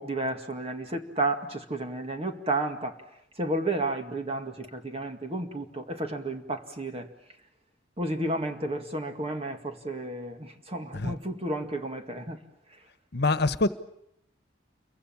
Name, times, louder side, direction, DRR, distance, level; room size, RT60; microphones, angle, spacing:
voice 1, 0.0-3.0 3.4-7.1 8.0-12.4, right 2 dB, 30° right, 2.0 m, -32 dB
voice 2, 13.1-13.7, left 2 dB, 60° left, 1.3 m, -25 dB
29.0 x 24.0 x 7.3 m
head